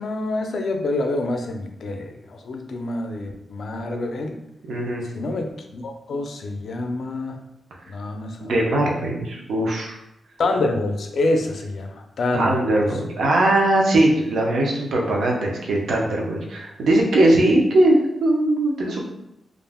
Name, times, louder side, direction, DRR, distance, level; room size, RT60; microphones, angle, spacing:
voice 1, 0.0-4.4 5.1-7.4 7.9-8.5 10.4-12.6, left 2 dB, 60° left, 4 dB, 0.4 m, -26 dB
voice 2, 4.7-5.0 8.4-10.0 12.3-19.1, right 1 dB, 80° right, -1 dB, 0.6 m, -20 dB
2.4 x 2.0 x 3.4 m, 0.86 s
wide cardioid pair, 150°, 0 cm